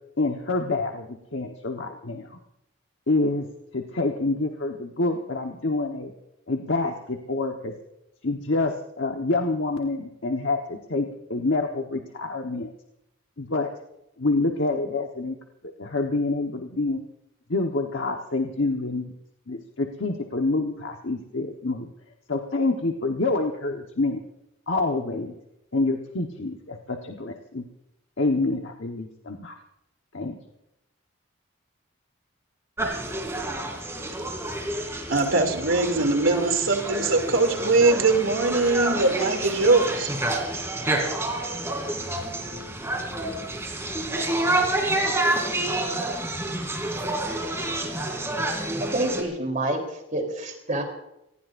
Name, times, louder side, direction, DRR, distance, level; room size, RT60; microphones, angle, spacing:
voice 1, 0.2-2.4 3.1-3.5 3.7-6.1 6.5-7.7 8.2-12.7 13.4-13.7 14.2-15.4 15.8-17.0 17.5-19.1 19.5-21.9 22.3-24.2 24.7-25.3 25.7-27.6 28.2-29.5 30.1-30.4, left 2 dB, 65° left, 2 dB, 1.3 m, -27 dB
sound 1, 32.8-49.2, right 1 dB, 15° right, 3.0 m, -28 dB
voice 2, 35.1-40.1, right 3 dB, 75° right, 5 dB, 2.9 m, -21 dB
voice 3, 48.8-50.8, right 1 dB, 40° right, 4 dB, 3.6 m, -28 dB
26.5 x 18.5 x 2.6 m, 0.86 s
head